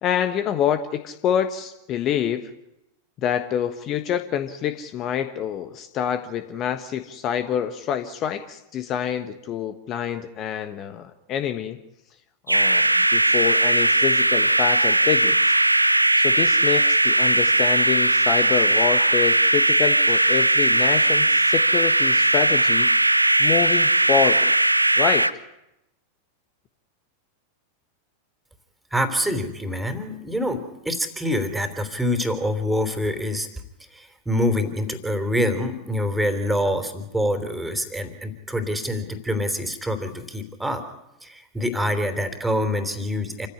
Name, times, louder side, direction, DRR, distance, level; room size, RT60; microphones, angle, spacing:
voice 1, 0.0-2.5 3.2-11.8 12.5-15.6 16.1-22.9 23.4-24.6 25.0-25.3, left 9 dB, 35° left, 9 dB, 1.4 m, -27 dB
sound 1, 12.5-25.3, right 2 dB, 85° right, 0.9 m, -19 dB
voice 2, 28.9-33.5 33.9-40.8 41.2-43.5, equal, 5° right, 9 dB, 3.5 m, -26 dB
28.0 x 16.0 x 9.8 m, 0.89 s
figure-of-eight pair, 90°, 0 cm